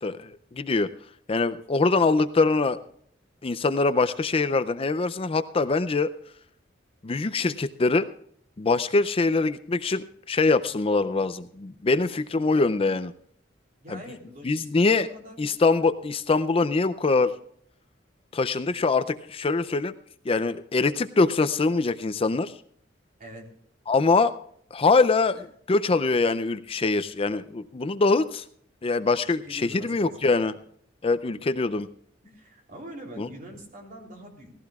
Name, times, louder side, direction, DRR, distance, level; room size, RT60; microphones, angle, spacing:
voice 1, 0.0-0.9 1.3-2.8 3.4-6.1 7.0-8.1 8.6-13.1 13.9-14.0 14.4-15.1 15.4-17.3 18.3-19.9 20.3-22.6 23.9-24.3 24.7-28.5 28.8-30.6 31.0-31.9 33.2-33.3, left 3 dB, 30° left, 12 dB, 0.4 m, -23 dB
voice 2, 13.8-15.4 23.2-23.5 29.4-30.3 32.2-34.5, equal, 50° right, 0 dB, 3.4 m, -44 dB
18.5 x 15.0 x 2.4 m, 0.62 s
head